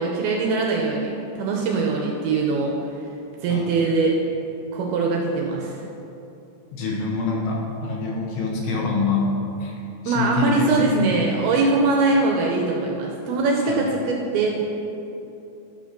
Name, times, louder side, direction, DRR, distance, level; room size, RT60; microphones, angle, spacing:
voice 1, 0.0-2.8 3.4-4.2 4.7-5.8 10.0-14.6, right 3 dB, 75° right, -1 dB, 2.4 m, -22 dB
voice 2, 6.7-9.3 9.6-9.7 10.0-11.3 13.7-13.8, left 3 dB, 75° left, -3 dB, 3.4 m, -25 dB
11.5 x 4.9 x 5.9 m, 2.8 s
omnidirectional pair, 5.1 m